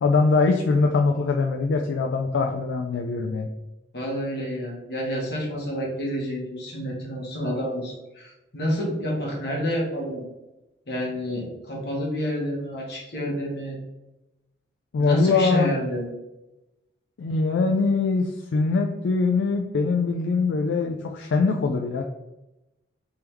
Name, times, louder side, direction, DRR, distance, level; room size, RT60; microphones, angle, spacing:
voice 1, 0.0-3.5 14.9-15.7 17.2-22.0, left 4 dB, 80° left, 2 dB, 0.3 m, -22 dB
voice 2, 3.9-10.2 10.9-13.8 15.0-16.2, equal, 60° left, -3 dB, 1.2 m, -29 dB
3.4 x 3.4 x 3.0 m, 0.98 s
head